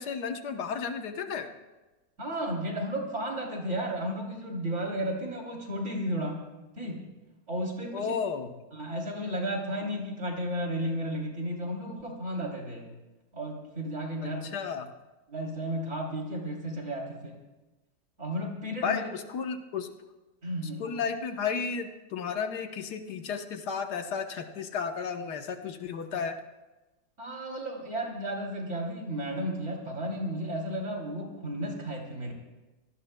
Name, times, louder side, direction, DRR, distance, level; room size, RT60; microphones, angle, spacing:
voice 1, 0.0-1.5 7.9-8.5 14.2-14.9 18.8-19.9 20.8-26.4, left 6 dB, 85° left, 6 dB, 1.6 m, -33 dB
voice 2, 2.2-6.4 6.8-7.0 7.5-8.2 8.7-12.9 13.3-14.5 15.3-17.3 18.2-19.1 20.4-20.9 27.2-32.3, equal, 45° right, -1 dB, 3.5 m, -33 dB
26.0 x 18.0 x 2.2 m, 1.1 s
omnidirectional pair, 1.7 m